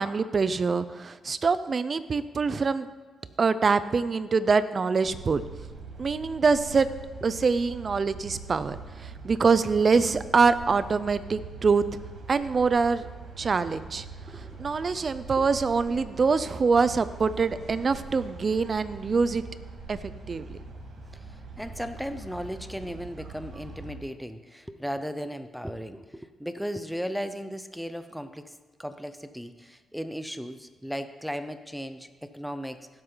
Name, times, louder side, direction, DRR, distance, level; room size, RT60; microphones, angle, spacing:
voice 1, 0.0-2.9 3.4-5.4 6.0-6.9 7.2-11.8 12.3-13.1 13.4-14.0 14.4-19.4 19.9-20.6, right 4 dB, 40° right, 14 dB, 0.6 m, -24 dB
sound 1, 5.0-23.9, right 4 dB, 70° right, 2.1 m, -43 dB
voice 2, 14.3-14.6 15.4-15.5 21.6-28.5 28.8-32.9, equal, ahead, 10 dB, 0.7 m, -36 dB
16.5 x 7.9 x 4.0 m, 1.4 s
cardioid pair, 95°, 0 cm